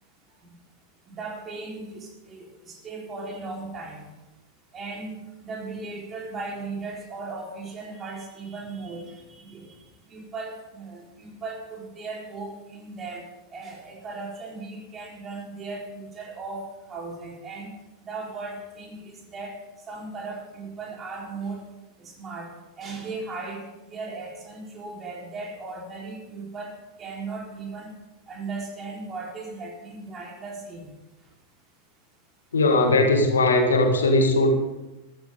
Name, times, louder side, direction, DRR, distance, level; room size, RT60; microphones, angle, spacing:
voice 1, 1.1-4.1 4.7-9.8 10.1-13.2 13.5-17.8 18.1-19.6 19.9-21.7 22.0-27.9 28.3-31.0, right 3 dB, 25° right, -1 dB, 3.7 m, -37 dB
voice 2, 32.5-34.5, left 2 dB, 70° left, 5 dB, 1.7 m, -19 dB
14.0 x 14.0 x 3.6 m, 1.0 s
figure-of-eight pair, 90°, 0 cm